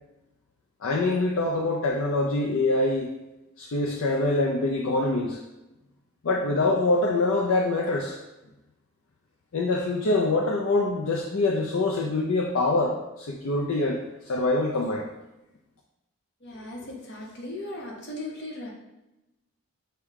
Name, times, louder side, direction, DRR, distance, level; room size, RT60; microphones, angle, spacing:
voice 1, 0.8-3.1 3.6-5.4 6.2-8.2 9.5-15.1, left 2 dB, 65° left, -1 dB, 0.4 m, -25 dB
voice 2, 16.4-18.7, left 1 dB, 50° left, -2 dB, 1.0 m, -37 dB
6.2 x 2.3 x 3.5 m, 0.96 s
head